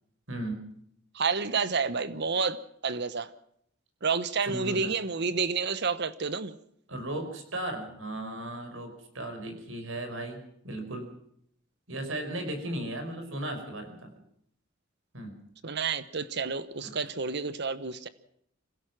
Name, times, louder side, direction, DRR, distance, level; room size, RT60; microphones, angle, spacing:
voice 1, 0.3-0.6 4.5-4.9 6.9-11.1 11.9-14.1 15.1-15.3 16.8-17.0, right 1 dB, 75° right, 5.4 m, -36 dB
voice 2, 1.1-3.3 4.0-6.5 15.6-18.1, right 5 dB, 55° right, 1.1 m, -30 dB
26.0 x 16.5 x 6.1 m
head